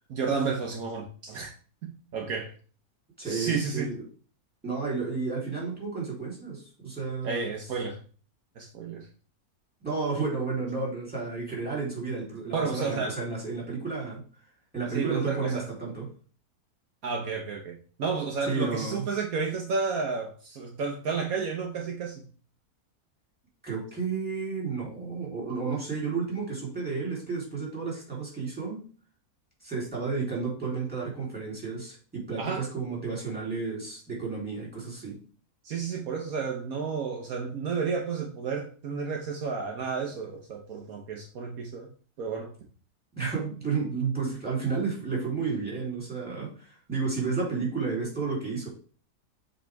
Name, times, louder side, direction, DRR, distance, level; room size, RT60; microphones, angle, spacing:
voice 1, 0.1-1.5 1.8-2.5 3.2-3.9 7.2-8.0 8.6-9.1 12.5-13.2 14.9-15.6 17.0-22.2 32.4-32.6 35.6-41.9 42.2-42.5, right 5 dB, 70° right, 1.3 m, -31 dB
voice 2, 3.2-4.0 4.6-7.5 9.8-14.2 14.7-16.1 18.5-19.1 23.6-28.8 29.6-35.2 43.1-48.7, right 4 dB, 5° right, 3.4 m, -32 dB
7.6 x 4.3 x 3.4 m
omnidirectional pair, 1.6 m